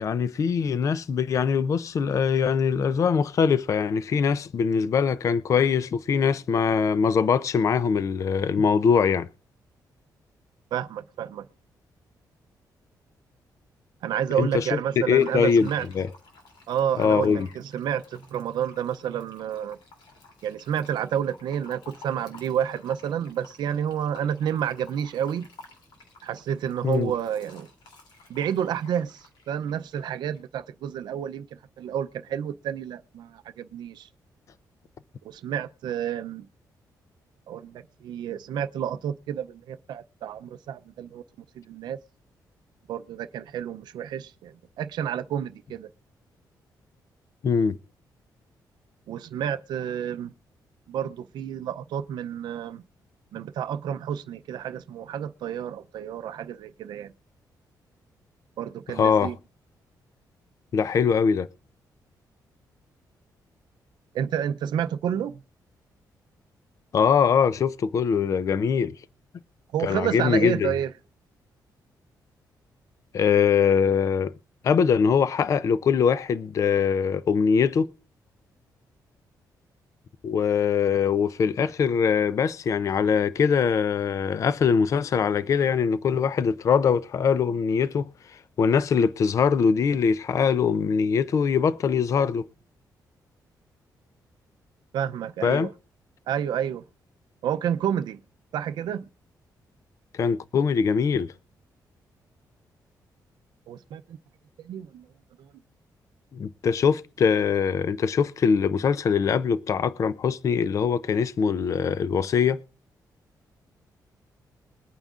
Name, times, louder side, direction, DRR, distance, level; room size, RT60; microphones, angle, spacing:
voice 1, 0.0-9.3 14.4-14.7 15.1-15.7 15.9-16.1 17.0-17.5 26.8-27.1 47.4-47.8 58.9-59.3 60.7-61.5 66.9-68.9 69.8-70.7 73.1-74.3 74.6-77.9 80.2-88.1 88.6-92.5 95.4-95.7 100.1-101.3 106.3-112.6, left 6 dB, 45° left, 0.5 m, -22 dB
voice 2, 10.7-11.5 14.0-15.9 16.7-19.8 20.4-25.5 26.2-27.7 28.3-31.5 31.8-34.1 35.2-36.5 37.5-41.2 41.6-42.0 42.9-45.9 49.1-50.3 50.9-52.8 53.3-57.1 58.6-59.4 64.1-65.4 69.7-70.9 94.9-95.7 96.3-96.8 97.4-98.2 98.5-99.0 103.7-104.2 104.6-105.1 105.4-105.5, right 9 dB, 80° right, 0.5 m, -30 dB
Fill (with liquid), 15.2-30.4, left 3 dB, 85° left, 2.9 m, -52 dB
22.0 x 8.9 x 2.4 m
cardioid pair, 135°, 7 cm